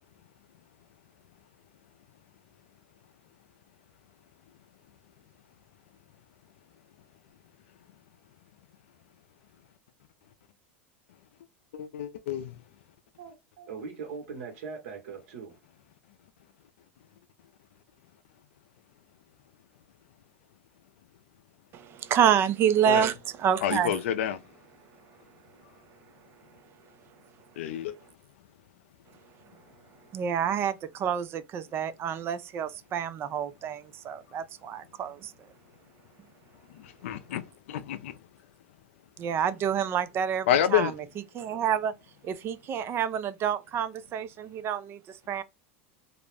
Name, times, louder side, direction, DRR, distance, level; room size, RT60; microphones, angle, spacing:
voice 1, 11.7-12.5 22.9-23.0 23.6-24.4 27.6-28.0 36.7-38.1 40.5-40.9, left 10 dB, 80° left, 0.4 m, -28 dB
voice 2, 13.2-15.6, right 5 dB, 70° right, 1.1 m, -40 dB
voice 3, 21.7-24.0 30.1-35.3 39.2-40.9 41.3-41.9 42.2-45.0 45.3-45.4, right 9 dB, 35° right, 0.4 m, -28 dB
2.4 x 2.0 x 3.2 m
hypercardioid pair, 105°, 7 cm